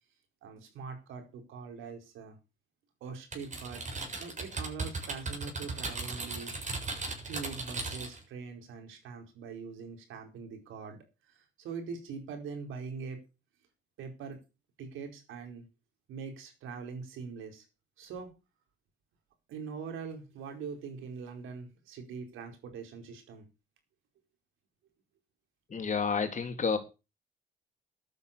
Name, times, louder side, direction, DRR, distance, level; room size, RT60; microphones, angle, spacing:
voice 1, 0.4-2.4 3.0-6.5 7.2-13.2 14.0-14.4 14.8-15.7 16.1-17.7 18.0-18.3 19.5-23.5, right 5 dB, 85° right, 5 dB, 4.8 m, -43 dB
Typing, 3.3-8.2, right 3 dB, 40° right, 7.1 m, -37 dB
voice 2, 25.7-26.8, left 5 dB, 40° left, 6 dB, 3.5 m, -30 dB
12.5 x 9.7 x 6.9 m, 0.30 s
cardioid pair, 90°, 20 cm